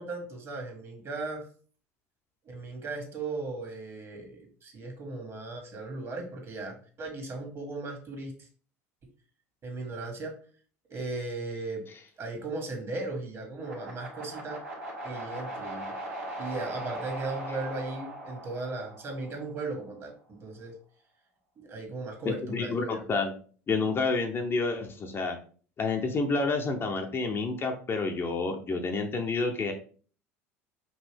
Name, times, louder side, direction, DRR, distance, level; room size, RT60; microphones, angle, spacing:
voice 1, 0.0-1.4 2.4-8.3 9.6-10.3 10.9-11.8 12.2-14.6 15.0-15.9 16.4-20.7 21.6-23.0, right 3 dB, 35° right, 3 dB, 1.7 m, -37 dB
sound 1, 13.6-19.7, right 1 dB, 85° right, 1.5 m, -39 dB
voice 2, 22.2-23.3 23.7-25.4 25.8-29.7, left 3 dB, 30° left, 3 dB, 0.8 m, -29 dB
5.3 x 2.6 x 3.4 m, 0.42 s
hypercardioid pair, 80°, 8 cm